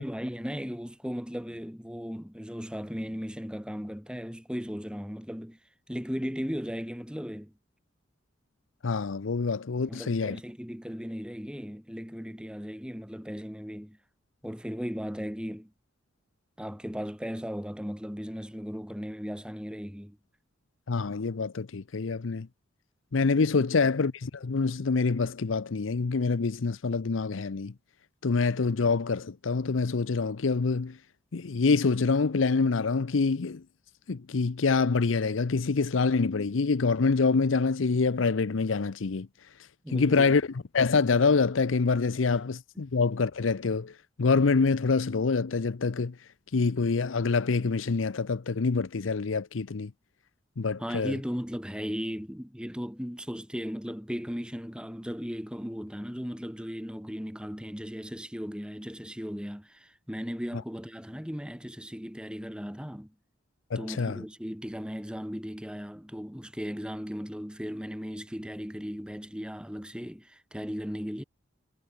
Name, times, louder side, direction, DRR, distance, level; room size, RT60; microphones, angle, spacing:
voice 1, 0.0-5.6 5.9-7.5 9.9-14.0 14.4-15.7 16.6-20.2 39.8-40.3 50.8-63.1 63.8-71.2, equal, 5° right, 7.4 m, -37 dB
voice 2, 8.8-10.4 20.9-22.5 23.1-27.7 28.2-31.0 31.3-33.6 34.1-39.3 39.9-40.4 40.7-46.1 46.5-49.9 50.6-51.2 63.7-64.2, left 4 dB, 80° left, 0.6 m, -26 dB
head